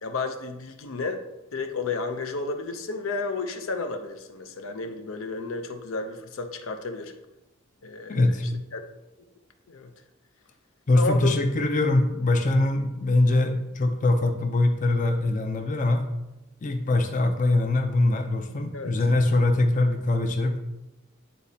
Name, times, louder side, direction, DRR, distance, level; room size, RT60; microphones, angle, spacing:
voice 1, 0.0-1.2 1.5-7.1 7.8-8.4 8.7-8.8 9.7-9.9 11.0-11.4 18.7-18.9, left 3 dB, 80° left, 6 dB, 0.6 m, -32 dB
voice 2, 8.1-8.4 10.9-16.1 16.6-20.6, left 2 dB, 40° left, 5 dB, 0.5 m, -23 dB
9.2 x 4.1 x 2.8 m, 0.98 s
head